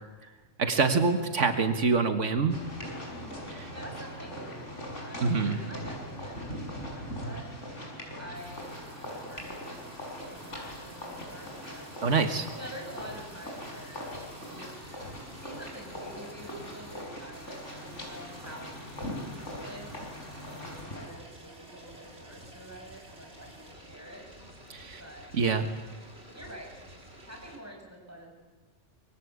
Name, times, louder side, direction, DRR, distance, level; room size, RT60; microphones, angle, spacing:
voice 1, 0.6-2.6 3.6-3.7 5.2-5.6 12.0-12.5 24.7-25.0 25.3-25.7, right 4 dB, 85° right, 7 dB, 1.9 m, -25 dB
sound 1, 2.5-21.1, equal, 90° left, 6.6 m, -41 dB
voice 2, 3.7-8.7 9.0-10.0 10.3-11.9 12.6-14.1 14.4-14.7 15.4-20.0 20.5-24.2 25.0-25.3 26.3-26.8 27.2-28.4, equal, 10° right, 0 dB, 7.0 m, -47 dB
sound 2, 8.3-27.6, right 1 dB, 60° right, 5.2 m, -51 dB
25.5 x 23.0 x 8.4 m, 1.3 s
omnidirectional pair, 1.2 m